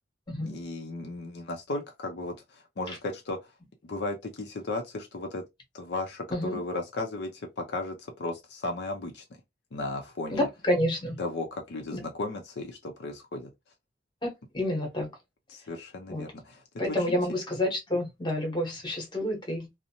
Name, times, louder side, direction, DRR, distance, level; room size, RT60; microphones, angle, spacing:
voice 1, 0.4-3.5 3.8-5.4 5.7-9.2 9.7-10.5 11.2-13.5 15.5-17.2, left 2 dB, 65° left, 0.5 m, -35 dB
voice 2, 10.3-11.2 11.9-12.0 14.5-15.1 16.1-16.2 16.8-19.8, left 1 dB, 25° left, 0.9 m, -29 dB
2.6 x 2.0 x 2.8 m
head